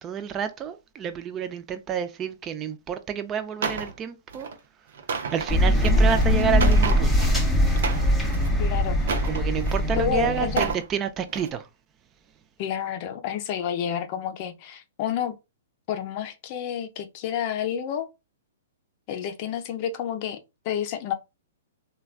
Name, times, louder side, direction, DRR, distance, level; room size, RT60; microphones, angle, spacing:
voice 1, 0.0-4.5 5.3-7.3 7.9-8.4 9.2-11.7, right 7 dB, 25° right, 0.4 m, -29 dB
sound 1, 3.6-3.9 4.3-4.5 4.9-7.4 7.7-8.5 9.0-9.9 10.4-10.8 11.3-11.5, right 5 dB, 70° right, 0.6 m, -31 dB
sound 2, 5.5-10.7, equal, 5° left, 0.7 m, -21 dB
voice 2, 8.6-9.0 10.0-10.7 12.6-15.3 15.9-18.1 19.1-20.4 20.6-21.1, left 9 dB, 45° left, 0.5 m, -29 dB
3.2 x 2.2 x 2.4 m
hypercardioid pair, 130°, 0 cm